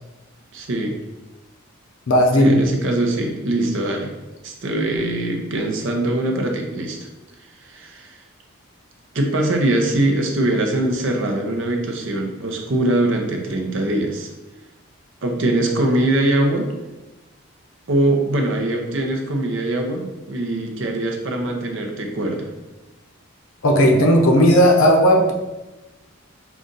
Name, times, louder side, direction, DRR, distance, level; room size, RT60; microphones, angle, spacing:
voice 1, 0.5-0.9 2.3-4.1 4.4-7.0 7.6-8.2 9.1-14.3 15.2-16.7 17.9-22.5, right 1 dB, 60° right, 2 dB, 0.6 m, -22 dB
voice 2, 2.1-2.5 23.6-25.3, equal, 75° left, 2 dB, 0.6 m, -14 dB
3.8 x 2.4 x 3.8 m, 1.1 s
head